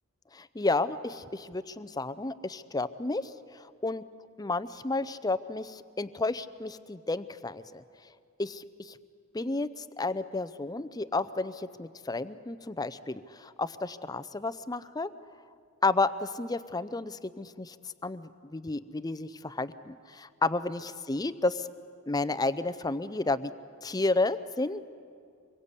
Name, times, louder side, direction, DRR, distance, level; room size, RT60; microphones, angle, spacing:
voice 1, 0.3-3.3 3.8-4.0 4.4-7.8 8.4-9.0 9.3-15.1 15.8-17.8 18.0-21.7 22.1-23.5 23.8-24.8, left 3 dB, 20° left, 13 dB, 0.6 m, -31 dB
25.5 x 22.5 x 8.3 m, 2.3 s
head